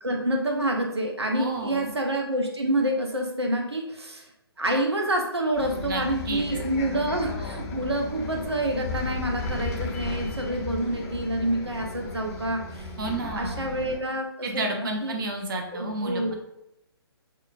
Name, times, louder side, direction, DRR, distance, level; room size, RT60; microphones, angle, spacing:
voice 1, 0.0-4.3 4.6-12.9 13.2-15.2 15.7-16.3, right 1 dB, 90° right, 2 dB, 0.7 m, -28 dB
voice 2, 1.4-1.9 5.9-6.4 13.0-13.6 14.4-16.3, right 2 dB, 55° right, 2 dB, 0.7 m, -31 dB
Bus, 5.6-14.0, left 3 dB, 40° left, 0.7 m, -35 dB
5.5 x 2.3 x 2.4 m, 0.82 s
figure-of-eight pair, 135°, 13 cm